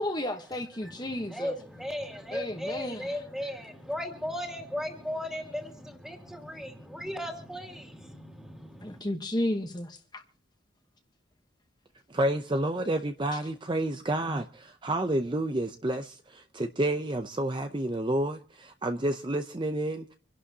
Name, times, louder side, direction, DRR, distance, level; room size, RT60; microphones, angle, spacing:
voice 1, 0.0-1.5 2.3-3.1 8.8-10.2, left 1 dB, 20° left, 1.1 m, -32 dB
voice 2, 0.8-9.0, left 1 dB, 5° right, 2.6 m, -37 dB
voice 3, 12.1-20.1, right 1 dB, 25° right, 0.6 m, -30 dB
26.5 x 11.5 x 2.8 m
head